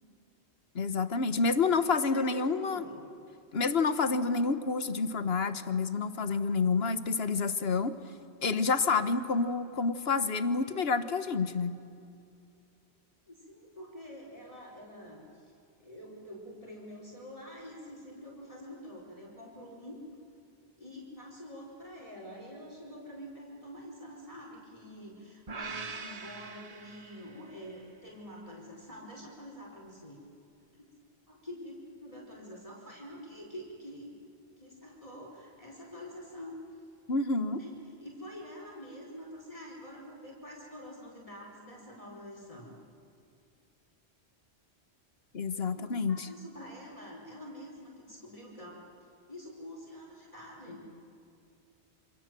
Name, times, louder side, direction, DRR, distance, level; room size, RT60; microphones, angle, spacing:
voice 1, 0.7-2.8 3.5-8.0 8.4-11.8 37.1-37.6 45.3-46.3, left 4 dB, 65° left, 11 dB, 1.4 m, -28 dB
voice 2, 1.9-3.0 13.3-15.5 15.8-20.0 20.8-30.2 30.7-30.9 31.3-34.1 34.6-36.6 37.5-42.8 45.7-48.8 49.3-50.8, equal, 30° left, -3 dB, 4.6 m, -47 dB
sound 1, 25.5-27.7, right 4 dB, 35° right, 1.2 m, -42 dB
27.5 x 27.0 x 7.6 m, 2.5 s
omnidirectional pair, 1.1 m